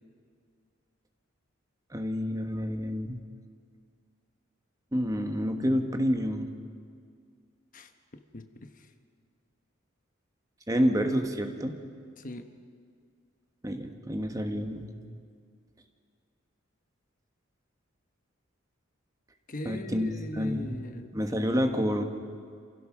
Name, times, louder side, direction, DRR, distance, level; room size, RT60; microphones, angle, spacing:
voice 1, 1.9-3.2 4.9-6.5 10.7-11.8 13.6-14.9 19.6-20.8 21.1-22.0, equal, 15° right, 5 dB, 1.3 m, -28 dB
voice 2, 7.7-8.9 12.2-12.5 19.5-21.1, left 1 dB, 40° left, 7 dB, 1.1 m, -40 dB
28.0 x 16.0 x 6.1 m, 2.2 s
head